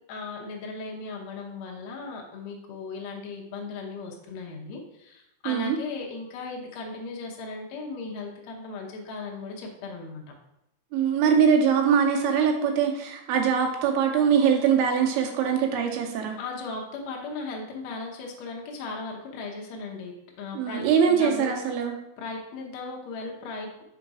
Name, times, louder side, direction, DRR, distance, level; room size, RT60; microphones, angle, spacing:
voice 1, 0.1-10.2 16.4-21.5 22.2-23.8, left 3 dB, 75° left, -1 dB, 1.5 m, -37 dB
voice 2, 5.5-5.8 10.9-16.4 20.5-21.9, right 7 dB, 85° right, 2 dB, 2.8 m, -22 dB
5.7 x 4.0 x 4.8 m, 0.86 s
omnidirectional pair, 4.3 m